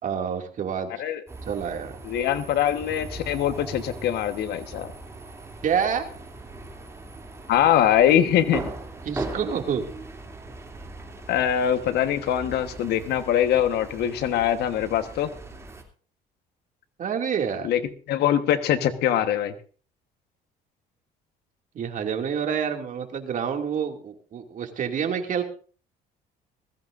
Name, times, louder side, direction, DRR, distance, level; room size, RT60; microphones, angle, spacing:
voice 1, 0.0-0.9 1.5-2.0 5.6-6.1 9.0-9.8 17.0-17.7 21.7-25.4, right 7 dB, 50° right, 4 dB, 2.4 m, -27 dB
sound 1, 1.3-15.8, right 2 dB, 15° right, 2.8 m, -39 dB
voice 2, 2.1-4.9 7.5-8.6 11.3-15.3 17.6-17.8 18.1-19.5, left 10 dB, 75° left, 9 dB, 1.3 m, -23 dB
20.5 x 15.0 x 2.6 m, 0.40 s
cardioid pair, 110°, 17 cm